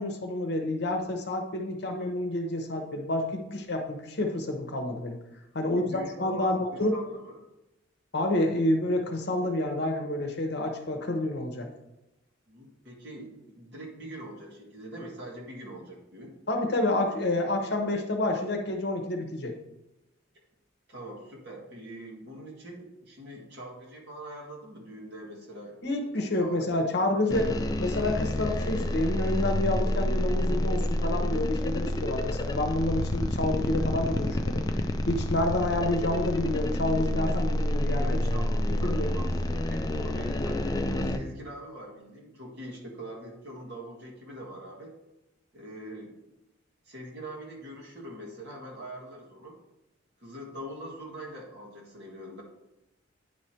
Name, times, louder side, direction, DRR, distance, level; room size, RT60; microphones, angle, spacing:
voice 1, 0.0-5.2 5.5-7.0 8.1-11.7 16.5-19.5 25.8-38.2 38.8-39.1, left 1 dB, 55° left, 3 dB, 0.9 m, -29 dB
voice 2, 5.6-7.4 8.7-8.8 12.5-16.3 20.9-25.8 26.4-27.0 38.0-44.9 45.5-46.2 46.9-49.6 50.2-52.4, right 1 dB, 55° right, -3 dB, 1.8 m, -43 dB
sound 1, 27.3-41.2, left 1 dB, 20° left, 0.3 m, -28 dB
9.6 x 3.2 x 4.3 m, 0.93 s
head